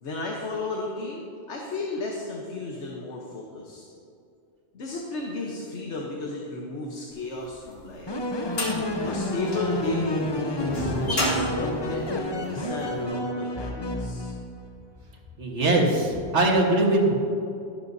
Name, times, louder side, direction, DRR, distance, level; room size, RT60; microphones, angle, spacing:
voice 1, 0.0-3.8 4.7-8.1 9.1-14.3, left 2 dB, 75° left, -1 dB, 1.4 m, -34 dB
sound 1, 7.5-12.8, equal, 60° left, 2.1 m, -31 dB
sound 2, 8.1-14.7, left 1 dB, 30° left, 0.6 m, -30 dB
voice 2, 15.4-17.1, right 2 dB, 75° right, 0 dB, 1.8 m, -21 dB
12.5 x 11.5 x 2.7 m, 2.5 s
omnidirectional pair, 1.2 m